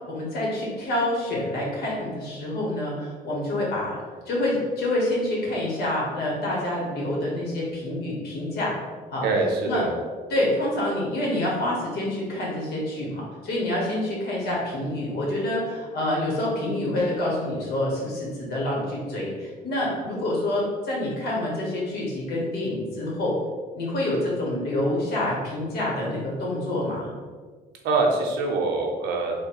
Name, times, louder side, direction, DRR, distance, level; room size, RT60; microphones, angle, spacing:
voice 1, 0.1-4.0 4.2-8.8 9.1-9.2 9.6-9.8 10.3-23.4 23.7-27.1, left 1 dB, 70° left, -4 dB, 1.5 m, -27 dB
voice 2, 9.2-9.9 27.8-29.3, right 3 dB, 80° right, 1 dB, 0.8 m, -24 dB
3.6 x 2.2 x 4.3 m, 1.5 s
cardioid pair, 110°, 17 cm